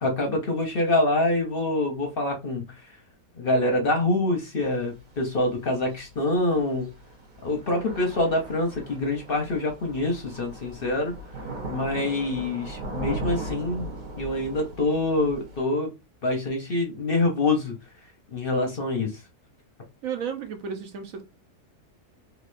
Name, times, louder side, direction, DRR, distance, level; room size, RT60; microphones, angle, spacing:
voice 1, 0.0-2.7 3.4-6.9 7.4-11.1 11.7-13.9 14.2-15.9 16.2-17.8 18.3-19.2, left 2 dB, 45° left, 0.8 m, -25 dB
Thunder / Rain, 4.6-15.6, right 1 dB, 40° right, 0.7 m, -38 dB
voice 2, 20.0-21.2, right 7 dB, 65° right, 1.1 m, -33 dB
4.0 x 2.7 x 2.6 m
omnidirectional pair, 1.7 m